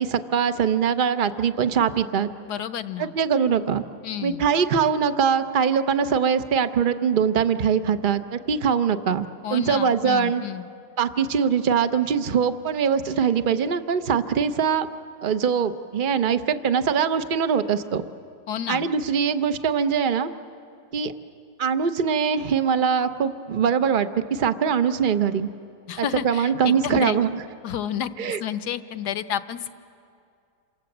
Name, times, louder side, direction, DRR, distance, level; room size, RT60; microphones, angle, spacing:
voice 1, 0.0-2.3 3.0-3.8 4.2-10.4 11.0-14.9 15.2-18.0 18.7-20.3 20.9-21.1 21.6-25.5 26.0-27.4 28.2-28.4, right 7 dB, 50° right, 10 dB, 0.6 m, -22 dB
voice 2, 2.4-3.1 4.0-4.4 9.4-10.6 18.5-18.9 25.9-27.2 27.6-28.1 28.4-29.7, left 9 dB, 65° left, 11 dB, 1.3 m, -30 dB
28.0 x 26.5 x 7.9 m, 2.4 s
omnidirectional pair, 2.0 m